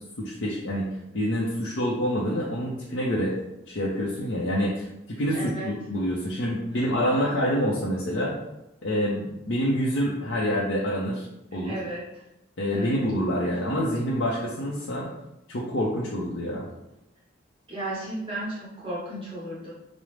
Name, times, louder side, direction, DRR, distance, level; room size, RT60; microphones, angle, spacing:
voice 1, 0.2-0.9 1.1-3.3 3.7-8.3 8.8-11.3 11.5-11.7 12.6-15.1 15.5-16.7, equal, 75° left, -4 dB, 0.6 m, -27 dB
voice 2, 5.3-5.7 7.0-7.4 11.5-12.3 12.7-13.1 17.7-19.7, right 1 dB, 30° right, -8 dB, 0.9 m, -35 dB
4.9 x 2.0 x 3.1 m, 0.92 s
head